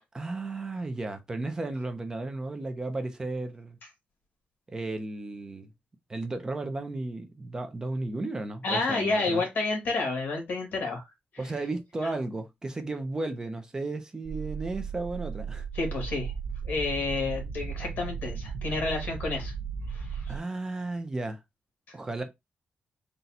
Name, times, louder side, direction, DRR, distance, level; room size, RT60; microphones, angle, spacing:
voice 1, 0.1-3.8 4.7-5.7 6.1-9.4 11.4-15.7 20.3-21.4 21.9-22.2, right 2 dB, 20° right, 0.6 m, -34 dB
voice 2, 8.6-11.0 15.7-16.3 16.7-19.5 19.9-20.3, left 3 dB, 55° left, 1.8 m, -30 dB
sound 1, 14.2-20.4, right 6 dB, 80° right, 0.6 m, -36 dB
4.0 x 2.3 x 4.1 m
wide cardioid pair, 180°, 3 cm